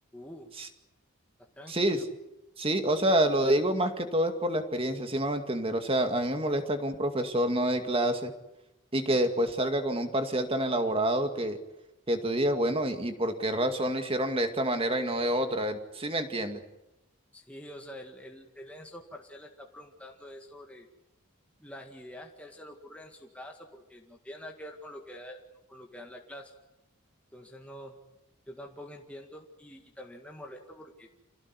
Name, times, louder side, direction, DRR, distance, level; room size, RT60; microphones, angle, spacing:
voice 1, 0.1-0.5 1.6-2.1 17.3-20.9 21.6-25.4 25.7-26.5 27.3-28.0 28.5-31.1, equal, 5° left, 1 dB, 1.9 m, -46 dB
voice 2, 1.7-2.0 2.6-8.3 8.9-11.6 12.1-16.6, right 1 dB, 25° right, 7 dB, 2.2 m, -27 dB
27.5 x 17.0 x 9.8 m, 0.94 s
head